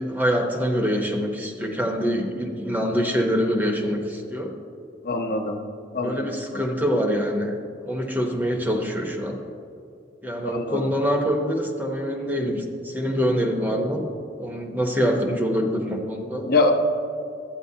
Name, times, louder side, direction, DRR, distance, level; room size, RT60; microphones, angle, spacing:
voice 1, 0.0-4.5 6.0-7.6 7.9-9.4 10.2-14.0 14.3-16.5, equal, 10° right, 2 dB, 0.7 m, -25 dB
voice 2, 5.0-5.6 5.9-6.3 10.4-10.8 16.4-16.7, left 3 dB, 55° left, 3 dB, 0.7 m, -23 dB
11.5 x 9.0 x 2.7 m, 2.6 s
head